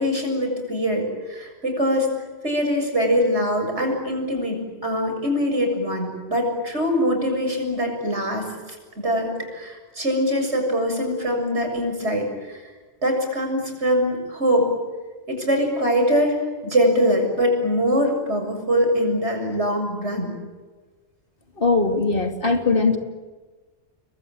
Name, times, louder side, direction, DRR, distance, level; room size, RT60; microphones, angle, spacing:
voice 1, 0.0-2.2 2.4-8.5 9.0-12.7 13.0-14.7 15.3-20.4, equal, 75° right, 3 dB, 7.5 m, -23 dB
voice 2, 21.6-23.0, left 3 dB, 50° left, 4 dB, 3.2 m, -20 dB
30.0 x 22.0 x 8.8 m, 1.3 s
omnidirectional pair, 1.2 m